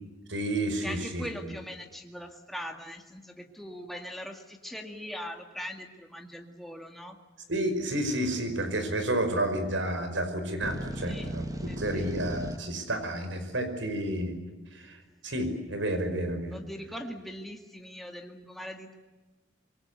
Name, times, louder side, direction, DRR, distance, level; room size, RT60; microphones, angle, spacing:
voice 1, 0.3-1.2 7.5-14.4 14.7-16.6, right 1 dB, 90° right, 8 dB, 5.5 m, -31 dB
voice 2, 0.8-7.2 11.0-11.3 11.7-12.1 16.5-19.0, equal, ahead, 3 dB, 2.1 m, -41 dB
sound 1, 10.6-12.6, equal, 20° right, 1.6 m, -36 dB
26.5 x 23.0 x 8.2 m, 1.3 s
head